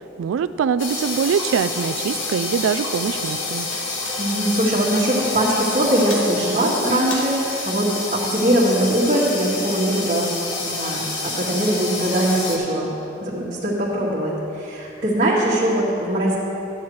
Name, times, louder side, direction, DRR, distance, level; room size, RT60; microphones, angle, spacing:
voice 1, 0.2-3.7, right 7 dB, 90° right, 13 dB, 0.3 m, -23 dB
sound 1, 0.8-12.6, left 3 dB, 85° left, 1.4 m, -28 dB
voice 2, 4.2-10.3 10.6-12.9 13.2-16.3, right 1 dB, 45° right, -11 dB, 1.9 m, -21 dB
13.5 x 9.5 x 3.2 m, 2.8 s
head